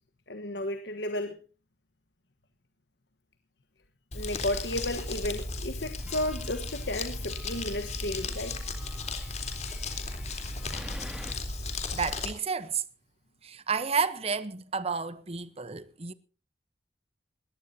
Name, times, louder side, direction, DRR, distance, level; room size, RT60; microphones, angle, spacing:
voice 1, 0.3-1.4 4.1-8.6, left 1 dB, 75° left, 1.3 m, -33 dB
Crumpling crinkling, 4.1-12.3, left 3 dB, 40° left, 3.7 m, -35 dB
sound 1, 6.0-11.3, equal, 5° right, 2.3 m, -49 dB
voice 2, 11.9-12.8 13.4-16.1, right 5 dB, 35° right, 0.9 m, -31 dB
22.0 x 17.5 x 2.8 m
head